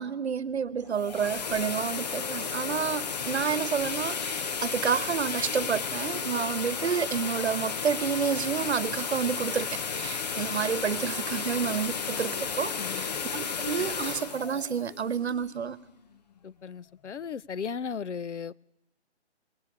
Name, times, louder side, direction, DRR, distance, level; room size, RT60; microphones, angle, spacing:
voice 1, 0.0-13.1 13.3-15.8, right 7 dB, 70° right, 1.2 m, -30 dB
sound 1, 0.8-15.7, left 6 dB, 35° left, 0.9 m, -33 dB
voice 2, 12.8-13.1 16.4-18.5, left 6 dB, 90° left, 0.8 m, -36 dB
20.0 x 17.5 x 8.5 m
hypercardioid pair, 165°, 34 cm